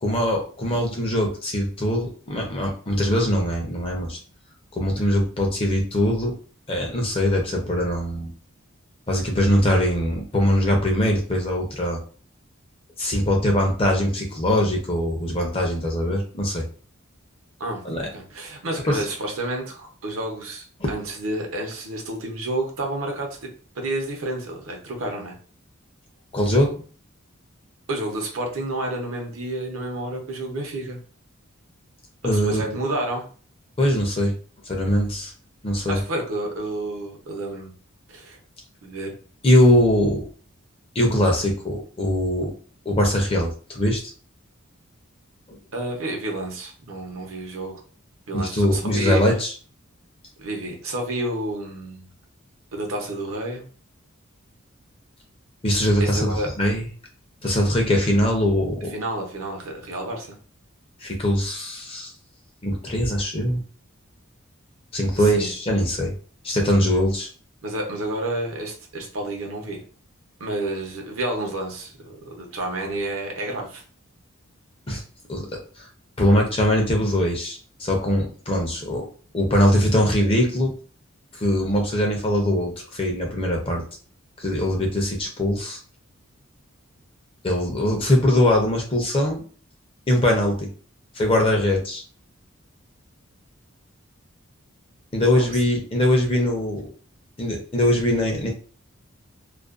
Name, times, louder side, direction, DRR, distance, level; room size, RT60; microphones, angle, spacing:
voice 1, 0.0-4.2 4.7-6.4 6.7-8.3 9.1-12.0 13.0-16.6 17.8-18.1 18.8-19.0 20.8-20.9 26.3-26.8 32.2-32.8 33.8-34.3 34.6-35.3 35.6-36.0 39.4-40.2 40.9-42.5 42.9-44.0 45.5-45.6 48.3-49.5 55.6-56.9 57.4-58.9 61.0-62.1 62.6-63.6 64.9-66.1 66.4-67.3 74.9-75.0 75.3-75.5 75.8-75.9 76.2-79.1 79.3-80.7 81.3-83.8 84.4-85.8 87.4-89.4 90.1-90.7 91.1-92.0 95.1-96.9 97.4-98.5, left 1 dB, 25° left, 1 dB, 0.5 m, -22 dB
voice 2, 18.1-23.4 23.7-25.3 27.9-31.0 32.2-33.3 35.9-37.7 38.1-38.4 38.8-39.1 45.7-47.7 48.3-49.2 50.4-52.1 52.7-53.6 56.0-56.5 58.9-60.4 65.2-65.5 67.6-69.8 70.4-73.8 95.5-95.6, right 1 dB, 75° right, 1 dB, 0.7 m, -30 dB
2.4 x 2.1 x 2.4 m, 0.40 s
head